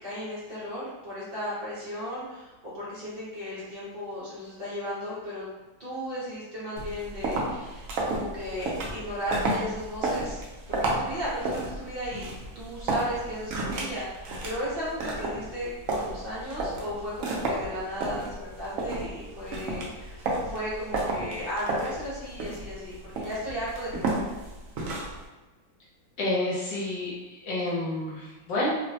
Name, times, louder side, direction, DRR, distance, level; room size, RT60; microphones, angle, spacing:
voice 1, 0.0-5.5 5.8-10.4 10.7-12.3 12.5-24.2, equal, 50° right, -9 dB, 0.6 m, -35 dB
sound 1, 6.8-25.2, right 2 dB, 85° right, 0.7 m, -32 dB
voice 2, 26.2-28.7, left 2 dB, 75° left, -5 dB, 1.3 m, -29 dB
3.1 x 2.0 x 2.6 m, 1.2 s
omnidirectional pair, 2.0 m